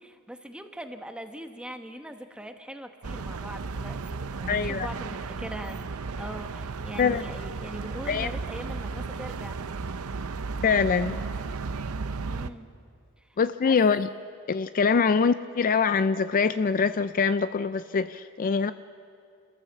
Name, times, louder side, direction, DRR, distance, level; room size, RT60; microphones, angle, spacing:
voice 1, 0.0-5.8 6.2-9.6 12.3-12.7 13.3-13.8, right 1 dB, 5° right, 6 dB, 1.1 m, -41 dB
sound 1, 3.0-12.5, right 4 dB, 80° right, 0.7 m, -34 dB
voice 2, 4.5-4.9 7.0-7.2 8.1-8.3 10.6-11.2 13.4-14.1 14.5-18.7, left 5 dB, 40° left, 12 dB, 0.4 m, -24 dB
28.0 x 13.5 x 7.3 m, 2.4 s
head